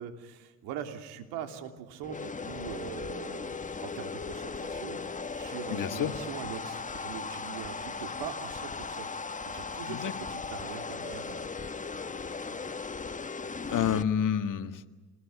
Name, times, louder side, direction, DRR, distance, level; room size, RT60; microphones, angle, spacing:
voice 1, 0.0-3.5 3.8-5.0 5.3-9.1 9.5-11.4 11.9-12.1 12.5-12.6, right 8 dB, 75° right, 6 dB, 3.2 m, -42 dB
sound 1, 2.0-14.0, left 4 dB, 20° left, 1.4 m, -37 dB
voice 2, 5.7-6.1 9.9-10.1 13.7-14.9, left 9 dB, 50° left, 9 dB, 1.8 m, -29 dB
28.5 x 20.5 x 8.5 m, 1.2 s
supercardioid pair, 75°, 40 cm